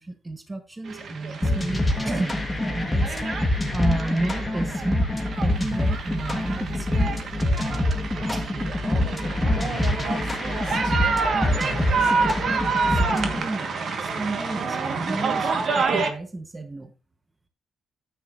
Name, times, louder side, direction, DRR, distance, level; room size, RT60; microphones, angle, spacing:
voice 1, 0.0-2.4 2.7-5.1 5.4-7.3 8.3-8.7 12.9-16.9, right 2 dB, 20° right, 1.0 m, -32 dB
sound 1, 0.9-16.1, right 4 dB, 55° right, 1.4 m, -28 dB
sound 2, 1.4-13.4, left 1 dB, 15° left, 1.4 m, -25 dB
sound 3, 5.3-9.4, right 4 dB, 45° left, 1.5 m, -49 dB
voice 2, 8.8-9.3 9.7-11.0 11.7-12.5, right 4 dB, 90° right, 2.1 m, -40 dB
9.7 x 7.9 x 2.5 m
cardioid pair, 90°, 0 cm